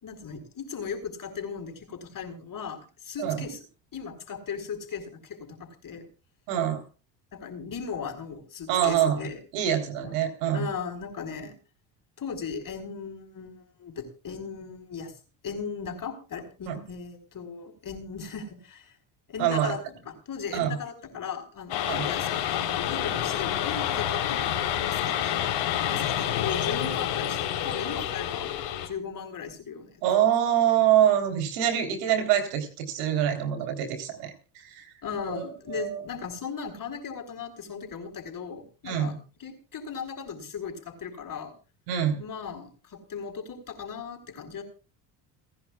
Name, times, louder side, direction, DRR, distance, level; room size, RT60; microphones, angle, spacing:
voice 1, 0.0-3.6 3.9-6.0 7.3-9.4 10.0-10.1 10.5-11.6 12.2-15.1 15.4-18.9 19.3-19.8 20.1-28.5 28.8-30.0 35.0-39.1 39.4-41.5 42.2-44.6, left 6 dB, 40° left, 6 dB, 4.7 m, -37 dB
voice 2, 3.2-3.5 6.5-6.8 8.7-10.7 16.7-16.8 19.4-19.8 20.5-20.8 21.8-22.1 30.0-34.9 35.3-36.1 38.8-39.2 41.9-42.2, right 10 dB, 80° right, 6 dB, 3.7 m, -25 dB
sound 1, 21.7-28.9, left 11 dB, 70° left, 3.9 m, -28 dB
30.0 x 10.5 x 2.4 m, 0.34 s
hypercardioid pair, 70°, 49 cm